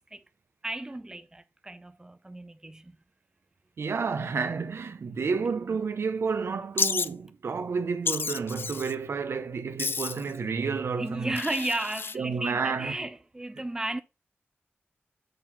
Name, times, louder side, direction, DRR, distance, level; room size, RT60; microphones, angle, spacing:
voice 1, 0.6-3.0 11.0-14.0, right 2 dB, 15° right, 0.5 m, -34 dB
voice 2, 3.8-11.4 12.1-12.9, right 5 dB, 80° right, 0.8 m, -30 dB
Wild animals, 6.8-7.1 8.1-8.9 9.8-10.3 11.4-12.2, left 5 dB, 60° left, 0.4 m, -30 dB
6.7 x 3.9 x 5.9 m
wide cardioid pair, 115°, 4 cm